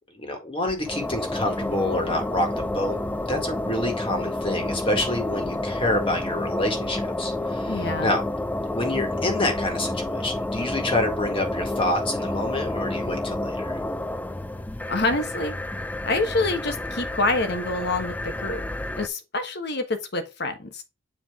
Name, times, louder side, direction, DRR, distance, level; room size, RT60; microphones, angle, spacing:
voice 1, 0.1-3.0 3.3-8.2 8.7-13.8, left 1 dB, 25° left, 1.8 m, -27 dB
sound 1, 0.7-19.1, left 1 dB, 10° left, 0.3 m, -29 dB
voice 2, 7.7-8.1 14.9-15.5 16.1-18.6 19.0-20.8, left 2 dB, 55° left, 1.2 m, -26 dB
7.7 x 4.6 x 3.6 m
head